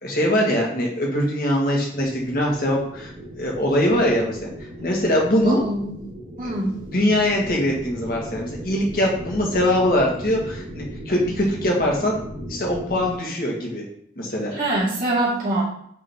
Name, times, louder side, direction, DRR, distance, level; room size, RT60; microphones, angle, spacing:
voice 1, 0.0-3.1 3.4-4.5 4.8-5.6 6.9-12.2 12.5-13.8 14.2-14.6, left 1 dB, 50° left, -1 dB, 1.7 m, -22 dB
sound 1, 1.9-13.2, equal, 60° right, 1.7 m, -37 dB
voice 2, 5.4-6.0 6.4-6.7 14.5-15.6, right 1 dB, 45° right, -8 dB, 2.4 m, -24 dB
8.3 x 3.8 x 3.6 m, 0.68 s
head